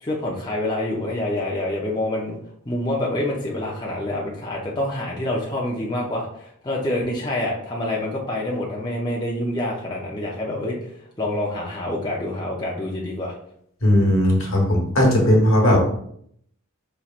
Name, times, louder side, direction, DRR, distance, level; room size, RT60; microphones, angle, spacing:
voice 1, 0.0-2.4 2.7-10.9 11.2-13.3 15.7-15.8, left 1 dB, 20° left, -3 dB, 0.5 m, -27 dB
voice 2, 13.8-15.8, left 1 dB, 70° left, 0 dB, 1.2 m, -17 dB
5.5 x 3.1 x 2.4 m, 0.67 s
head